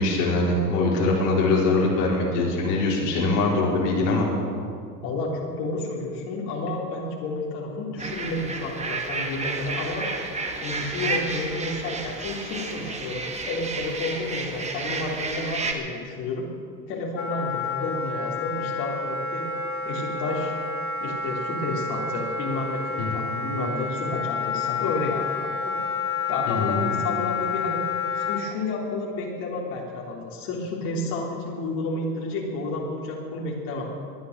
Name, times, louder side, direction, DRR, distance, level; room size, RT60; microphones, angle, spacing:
voice 1, 0.0-4.3 23.0-23.3 26.5-26.8, left 2 dB, 65° left, -4 dB, 5.0 m, -23 dB
voice 2, 5.0-10.1 10.5-16.5 16.9-19.4 19.8-20.5 21.0-25.8 26.3-27.8 28.2-33.9, left 2 dB, 50° left, -2 dB, 3.6 m, -31 dB
sound 1, 8.0-15.7, right 3 dB, 15° right, 1.8 m, -31 dB
Wind instrument woodwind instrument, 17.1-28.4, left 4 dB, 25° left, 2.4 m, -29 dB
20.0 x 10.5 x 6.6 m, 2.3 s
hypercardioid pair, 110°, 49 cm